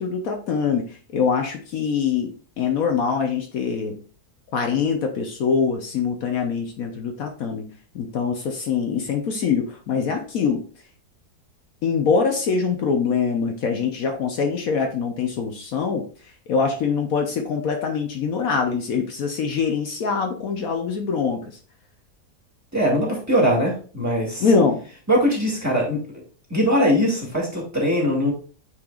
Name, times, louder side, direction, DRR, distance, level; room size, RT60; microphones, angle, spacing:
voice 1, 0.0-4.0 4.5-10.6 11.8-21.6 24.4-24.8, left 5 dB, 65° left, 4 dB, 1.2 m, -24 dB
voice 2, 22.7-24.4 25.1-26.0 26.5-28.3, equal, 10° right, -4 dB, 2.2 m, -21 dB
8.6 x 4.6 x 2.4 m, 0.40 s
omnidirectional pair, 1.7 m